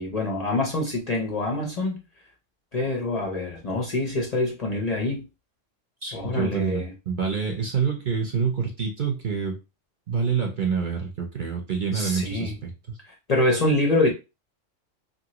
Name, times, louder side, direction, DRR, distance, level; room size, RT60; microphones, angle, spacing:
voice 1, 0.0-2.0 2.7-5.3 6.1-6.9 11.9-12.6 13.3-14.1, left 2 dB, 40° left, 0.6 m, -25 dB
voice 2, 6.0-9.6 10.1-12.7, right 6 dB, 50° right, 0.7 m, -27 dB
2.8 x 2.6 x 2.9 m
omnidirectional pair, 1.3 m